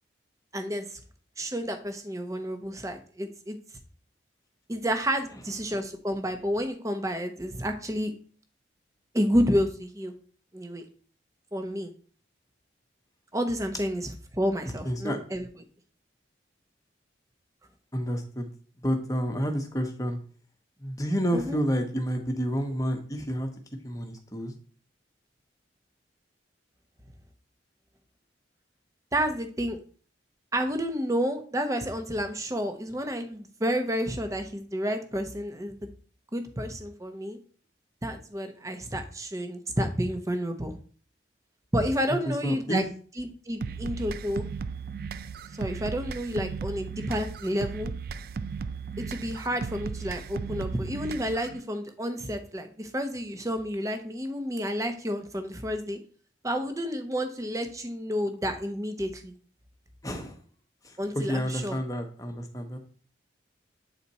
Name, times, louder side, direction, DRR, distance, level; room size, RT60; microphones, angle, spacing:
voice 1, 0.5-1.0 1.4-3.6 4.7-8.1 9.1-10.1 10.5-10.8 11.5-11.9 13.3-15.5 21.3-21.6 29.1-29.8 30.5-35.9 36.3-37.4 38.0-40.7 41.7-42.9 43.2-44.5 45.6-47.9 49.1-56.0 56.4-59.3 61.0-61.8, equal, 15° right, 7 dB, 0.8 m, -30 dB
voice 2, 14.8-15.2 17.9-18.5 18.8-20.2 20.8-23.5 23.8-24.5 42.2-42.8 60.0-60.4 60.8-62.8, equal, 20° left, 4 dB, 1.0 m, -29 dB
sound 1, 43.6-51.6, right 5 dB, 50° right, 0.3 m, -36 dB
8.3 x 4.1 x 4.1 m, 0.43 s
head